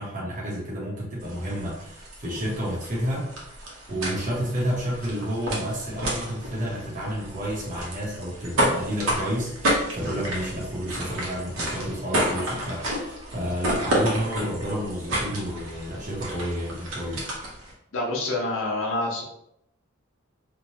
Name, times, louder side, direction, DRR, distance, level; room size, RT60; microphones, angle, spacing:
voice 1, 0.0-3.3 3.6-17.2, equal, 35° right, -6 dB, 0.8 m, -30 dB
sound 1, 1.2-17.7, right 1 dB, 70° right, 0.8 m, -31 dB
voice 2, 17.9-19.2, left 2 dB, 65° left, -2 dB, 0.7 m, -27 dB
3.0 x 2.2 x 2.7 m, 0.78 s
head